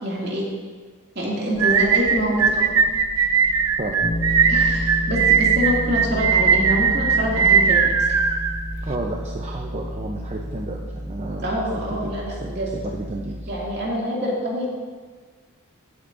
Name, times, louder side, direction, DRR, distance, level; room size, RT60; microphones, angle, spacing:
voice 1, 0.0-0.5 1.2-2.8 4.5-8.2 11.4-12.7 13.5-14.7, equal, 50° right, -4 dB, 2.4 m, -26 dB
sound 1, 1.6-9.0, right 6 dB, 70° right, 0.6 m, -19 dB
Bass guitar, 4.0-13.9, equal, 50° left, 2.1 m, -30 dB
voice 2, 8.8-11.4 11.9-13.5, right 2 dB, 30° right, 0 dB, 0.7 m, -32 dB
16.0 x 8.4 x 2.6 m, 1.5 s
head